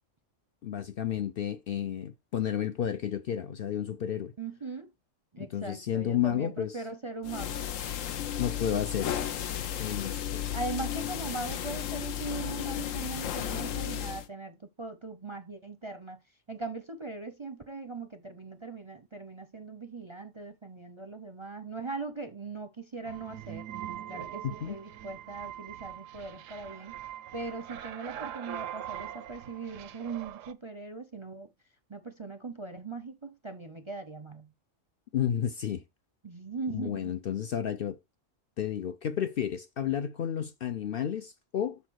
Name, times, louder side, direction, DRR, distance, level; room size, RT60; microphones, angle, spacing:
voice 1, 0.6-4.3 5.4-6.8 8.4-9.1 9.8-10.4 24.4-24.8 35.1-35.8 36.7-38.0 38.6-41.8, left 9 dB, 60° left, 0.6 m, -31 dB
voice 2, 4.4-4.9 5.3-7.7 10.5-16.2 16.5-23.7 24.1-27.0 27.3-31.5 31.9-34.5 36.2-37.2, right 3 dB, 30° right, 0.6 m, -40 dB
sound 1, 7.2-14.3, left 10 dB, 85° left, 1.1 m, -34 dB
sound 2, 23.1-30.5, right 11 dB, 85° right, 1.0 m, -42 dB
7.2 x 3.9 x 6.3 m
omnidirectional pair, 1.3 m